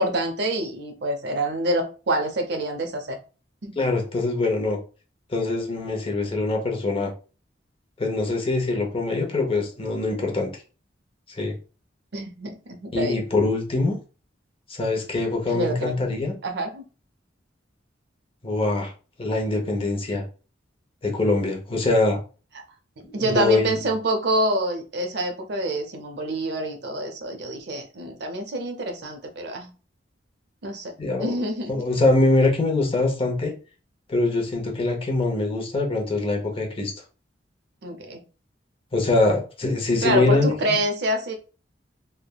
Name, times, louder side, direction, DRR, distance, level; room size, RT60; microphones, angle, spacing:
voice 1, 0.0-3.2 3.6-3.7 12.1-13.2 15.5-16.0 16.4-16.8 23.1-29.7 30.6-30.9 31.2-31.9 37.8-38.2 40.0-41.4, right 1 dB, 65° right, 4 dB, 0.6 m, -26 dB
voice 2, 3.8-4.8 5.3-7.1 8.0-10.5 11.4-11.5 12.9-13.9 14.7-16.3 18.4-18.9 19.2-20.2 21.0-22.2 23.0-23.7 31.0-31.3 31.7-33.5 34.1-36.9 38.9-40.6, left 2 dB, 30° left, 1 dB, 0.6 m, -23 dB
3.2 x 2.1 x 2.3 m, 0.35 s
head